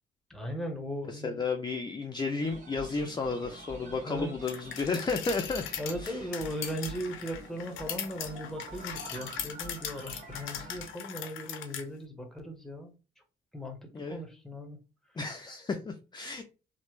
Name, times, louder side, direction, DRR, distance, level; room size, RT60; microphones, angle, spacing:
voice 1, 0.3-1.4 3.8-4.3 5.8-12.9 13.5-14.8, equal, ahead, 4 dB, 0.8 m, -38 dB
voice 2, 1.1-5.6 6.0-6.3 13.9-14.2 15.2-16.4, left 4 dB, 20° left, 5 dB, 0.4 m, -33 dB
sound 1, 2.4-10.9, right 2 dB, 40° right, 1.3 m, -47 dB
sound 2, 4.5-11.9, left 9 dB, 80° left, 0.6 m, -40 dB
3.0 x 2.1 x 3.0 m, 0.32 s
cardioid pair, 90°, 20 cm